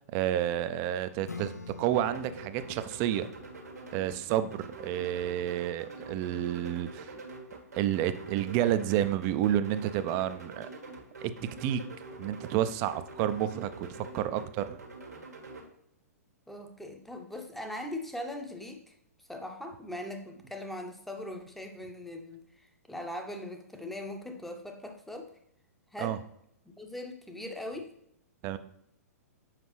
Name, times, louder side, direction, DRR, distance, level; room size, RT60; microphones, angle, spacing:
voice 1, 0.1-1.5 1.8-3.3 3.9-7.1 7.8-10.7 11.2-11.3 11.6-11.8 12.2-14.8 26.0-26.2 28.4-28.6, right 11 dB, 35° right, 11 dB, 0.5 m, -30 dB
Acoustic guitar / Strum, 1.3-6.5, left 5 dB, 85° left, 0.5 m, -49 dB
sound 1, 1.9-15.7, right 3 dB, 80° right, 1.4 m, -46 dB
voice 2, 16.5-25.3 25.9-26.2 26.6-27.9, left 1 dB, ahead, 3 dB, 0.8 m, -40 dB
7.4 x 4.9 x 3.1 m, 0.75 s
figure-of-eight pair, 110°, 9 cm